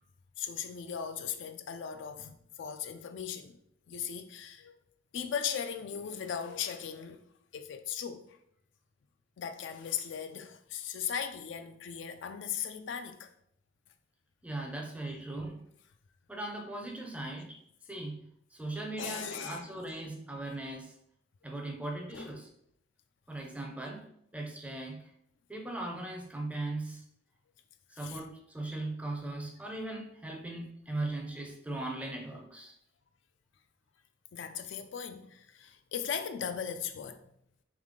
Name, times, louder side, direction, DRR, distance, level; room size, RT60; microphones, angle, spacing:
voice 1, 0.4-3.6 3.9-4.8 5.1-7.2 7.5-8.4 9.4-13.3 19.0-19.7 22.1-22.4 28.0-28.2 30.9-31.0 34.3-37.2, left 8 dB, 60° left, 0.3 m, -38 dB
voice 2, 14.4-15.7 16.3-17.6 17.9-20.9 21.4-22.5 23.3-25.1 25.5-27.0 28.0-32.7, right 2 dB, 5° right, 0.5 m, -39 dB
3.7 x 3.2 x 3.6 m
head